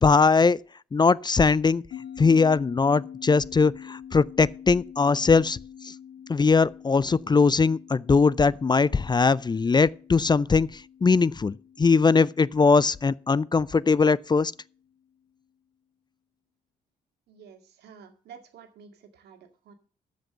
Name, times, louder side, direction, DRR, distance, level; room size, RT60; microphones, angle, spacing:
voice 1, 0.0-0.6 0.9-1.8 2.2-5.6 5.8-5.9 6.3-14.5, left 4 dB, 25° left, 0.5 m, -21 dB
sound 1, 1.9-14.7, left 8 dB, 75° left, 1.1 m, -46 dB
voice 2, 17.3-19.7, right 7 dB, 80° right, 2.0 m, -50 dB
14.0 x 5.3 x 6.7 m
supercardioid pair, 55°, 17 cm